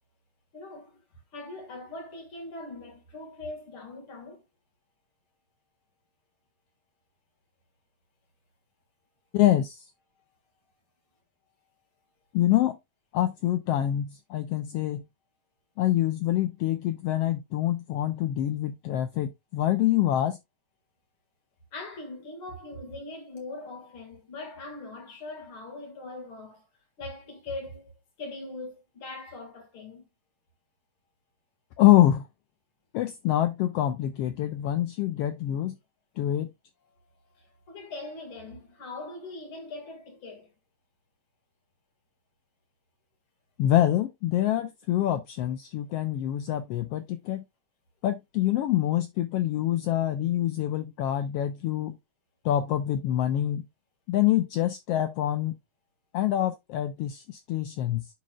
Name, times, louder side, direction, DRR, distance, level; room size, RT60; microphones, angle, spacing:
voice 1, 0.5-1.0 1.3-4.4 21.7-26.6 27.0-27.9 28.2-30.1 37.3-40.5, left 2 dB, 50° left, 2.7 m, -41 dB
voice 2, 9.3-9.8 12.3-12.8 13.1-15.0 15.8-20.4 31.8-32.2 32.9-35.7 36.2-36.5 43.6-47.4 48.0-52.0 52.4-53.6 54.1-55.6 56.1-58.0, left 13 dB, 80° left, 1.4 m, -25 dB
11.5 x 4.3 x 2.3 m
omnidirectional pair, 3.3 m